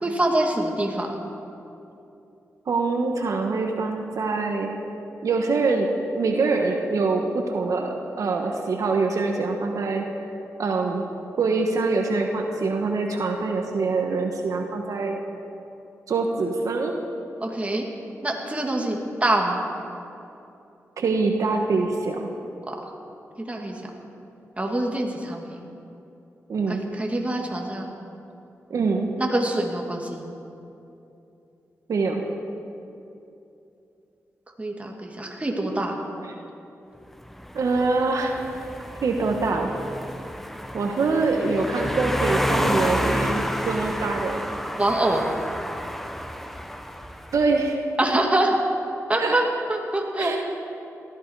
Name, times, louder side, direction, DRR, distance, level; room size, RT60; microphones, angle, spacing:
voice 1, 0.0-1.2 17.4-17.9 18.2-19.6 22.7-22.8 23.5-23.8 24.6-25.4 26.7-27.9 29.2-30.2 34.6-36.0 44.8-45.2 48.0-48.6 49.1-49.4 49.7-50.4, right 1 dB, 25° right, 1 dB, 2.6 m, -25 dB
voice 2, 2.7-4.7 5.2-5.9 6.2-10.0 10.6-11.0 11.4-15.2 16.1-16.9 21.0-22.3 26.5-26.9 28.7-29.1 31.9-32.2 37.5-38.3 39.0-39.7 40.7-44.4 47.3-47.8 49.2-49.3 50.2-50.4, right 3 dB, 75° right, 2 dB, 1.4 m, -24 dB
sound 1, 37.2-47.5, equal, 5° left, 1.1 m, -30 dB
19.0 x 14.0 x 4.8 m, 2.8 s
cardioid pair, 60°, 6 cm